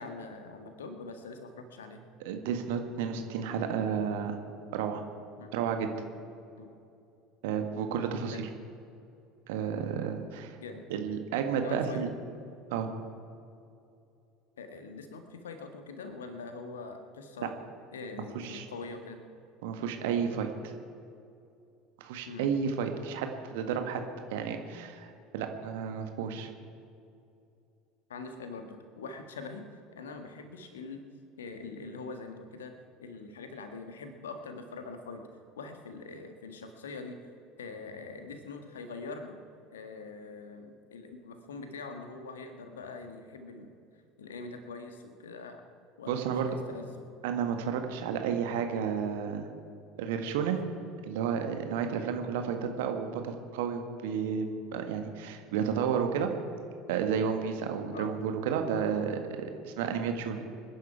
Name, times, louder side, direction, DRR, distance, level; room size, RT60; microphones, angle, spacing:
voice 1, 0.0-2.0 5.4-5.5 6.6-6.7 8.3-8.5 10.6-10.9 11.6-12.1 14.6-17.5 17.9-19.2 22.3-22.5 28.1-31.0 31.4-35.3 35.5-37.2 37.6-39.4 39.7-43.7 44.2-45.6 46.0-46.9 50.6-50.7 57.9-58.1, left 4 dB, 70° left, 6 dB, 1.6 m, -43 dB
voice 2, 2.3-4.4 4.7-5.0 5.5-5.9 7.4-8.5 9.5-10.6 10.9-12.1 12.7-12.9 17.4-17.5 18.3-18.7 19.6-20.7 22.0-24.0 24.3-26.5 46.1-46.5 47.2-49.5 50.0-50.6 51.1-56.3 56.9-60.5, right 7 dB, 60° right, 5 dB, 1.6 m, -32 dB
26.0 x 10.5 x 4.7 m, 2.6 s
figure-of-eight pair, 70°, 0 cm